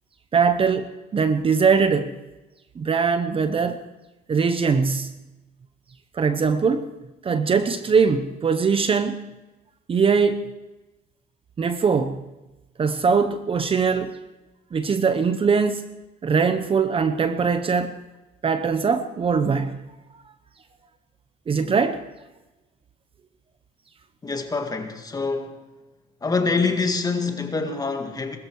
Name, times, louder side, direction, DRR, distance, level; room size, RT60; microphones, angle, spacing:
voice 1, 0.3-2.1 2.8-3.8 4.3-5.2 6.1-6.9 7.2-9.3 9.9-10.5 11.6-12.2 12.8-14.2 14.7-15.9 16.2-18.0 18.4-19.9 20.1-20.2 21.5-22.0, right 5 dB, 35° right, 0.9 m, -21 dB
voice 2, 24.2-25.6 26.2-28.4, left 4 dB, 20° left, 1.9 m, -25 dB
21.0 x 13.5 x 4.7 m
cardioid pair, 110°, 17 cm